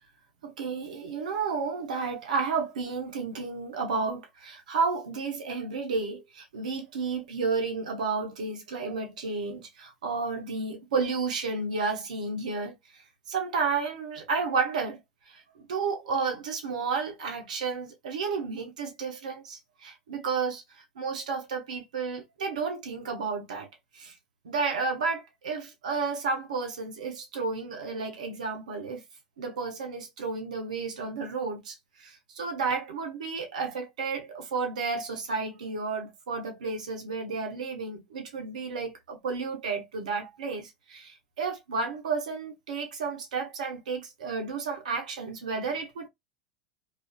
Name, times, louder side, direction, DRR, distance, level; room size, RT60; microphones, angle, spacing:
voice 1, 0.4-13.0 13.3-15.0 15.3-15.4 15.7-23.7 23.9-24.2 24.4-29.0 29.4-46.1, right 4 dB, 80° right, 0.7 m, -32 dB
2.4 x 2.4 x 2.3 m
hypercardioid pair, 95°, 4 cm